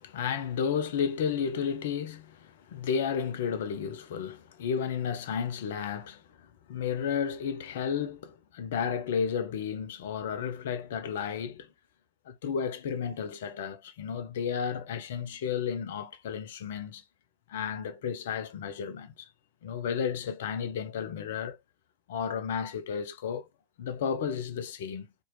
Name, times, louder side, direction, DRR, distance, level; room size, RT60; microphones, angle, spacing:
voice 1, 0.0-11.7 12.3-17.0 17.5-19.1 19.6-21.6 22.1-23.5 23.8-25.1, left 7 dB, 55° left, 0.4 m, -32 dB
2.8 x 2.1 x 3.1 m
figure-of-eight pair, 90°, 0 cm